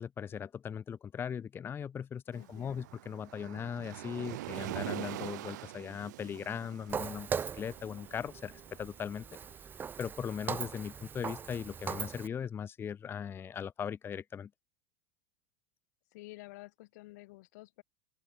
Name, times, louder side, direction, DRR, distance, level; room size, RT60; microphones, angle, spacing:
voice 1, 0.0-9.2 10.0-14.5, left 8 dB, 25° left, 0.7 m, -39 dB
voice 2, 2.3-3.0 16.1-17.8, left 21 dB, 70° left, 1.7 m, -51 dB
Waves surf, 2.3-9.4, right 17 dB, 75° right, 1.0 m, -44 dB
Walk footsteps, 6.9-12.3, right 7 dB, 20° right, 0.7 m, -40 dB
open air
supercardioid pair, 120°, 10 cm